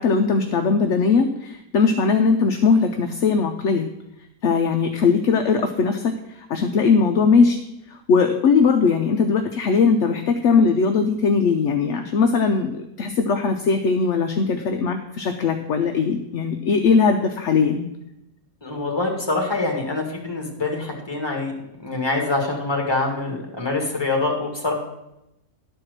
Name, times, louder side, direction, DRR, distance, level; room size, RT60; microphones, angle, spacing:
voice 1, 0.0-3.9 4.4-7.6 7.9-17.9, left 5 dB, 65° left, 5 dB, 0.8 m, -20 dB
voice 2, 18.6-21.5 21.8-24.7, left 3 dB, 15° left, 1 dB, 1.8 m, -25 dB
11.5 x 4.5 x 6.4 m, 0.86 s
omnidirectional pair, 1.7 m